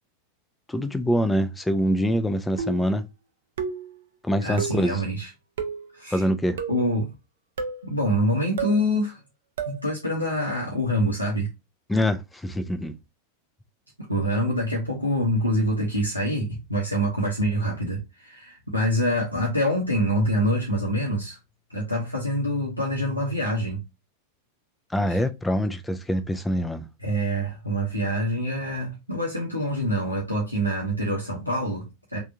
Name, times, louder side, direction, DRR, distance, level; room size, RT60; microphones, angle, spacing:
voice 1, 0.7-3.1 4.2-5.0 6.1-6.6 11.9-12.9 24.9-26.9, equal, 5° left, 0.4 m, -24 dB
sound 1, 2.6-3.0 3.6-4.0 4.6-4.9 5.6-5.9 6.6-6.9 7.6-7.9 8.6-8.8 9.6-9.8, right 5 dB, 60° right, 0.4 m, -31 dB
voice 2, 4.4-5.3 5.9-6.2 6.7-7.1 7.9-9.2 9.7-11.5 14.1-21.4 21.7-23.8 25.1-25.2 27.0-32.2, equal, 90° left, 0.8 m, -25 dB
3.4 x 2.3 x 2.7 m
figure-of-eight pair, 90°, 0 cm